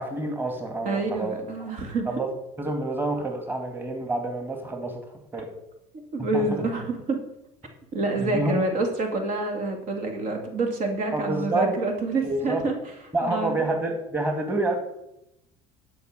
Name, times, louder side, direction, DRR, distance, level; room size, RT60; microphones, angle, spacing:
voice 1, 0.0-1.7 2.1-2.3 2.6-5.0 5.3-5.5 6.2-6.6 8.2-8.6 11.1-11.7 12.2-12.6 13.1-14.8, right 2 dB, 15° right, 3 dB, 2.4 m, -28 dB
voice 2, 0.8-2.1 6.1-7.2 7.9-12.7 13.2-13.6, right 3 dB, 60° right, 4 dB, 2.4 m, -27 dB
11.5 x 5.4 x 6.7 m, 0.85 s
supercardioid pair, 80°, 16 cm